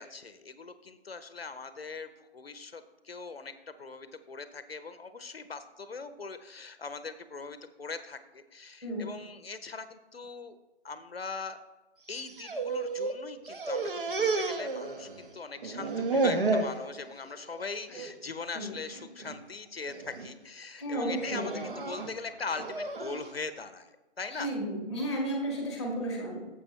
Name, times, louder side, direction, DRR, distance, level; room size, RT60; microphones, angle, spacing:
voice 1, 0.0-10.6 10.8-11.6 12.1-24.5, left 4 dB, 60° left, 12 dB, 0.8 m, -41 dB
sound 1, 12.1-13.2 13.4-15.3 15.6-16.8 17.2-17.6 17.9-18.1 19.0-19.4 19.9-20.3 21.1-23.3, right 3 dB, 50° right, 1.0 m, -32 dB
voice 2, 20.8-21.8 24.3-26.5, right 1 dB, ahead, 0 dB, 1.1 m, -33 dB
12.0 x 7.7 x 3.1 m, 1.1 s
figure-of-eight pair, 145°, 34 cm